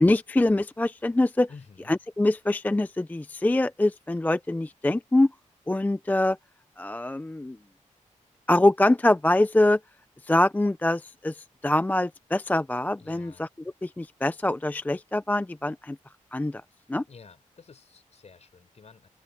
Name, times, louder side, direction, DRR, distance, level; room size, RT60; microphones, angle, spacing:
voice 1, 0.0-1.5 1.9-5.3 5.7-6.4 6.8-7.6 8.5-9.8 10.2-11.4 11.6-13.5 13.8-16.0 16.3-16.6 16.9-17.0, left 1 dB, 10° left, 0.4 m, -24 dB
voice 2, 1.5-2.0 13.0-13.5 17.0-19.1, left 5 dB, 55° left, 4.4 m, -50 dB
open air
wide cardioid pair, 110°, 13 cm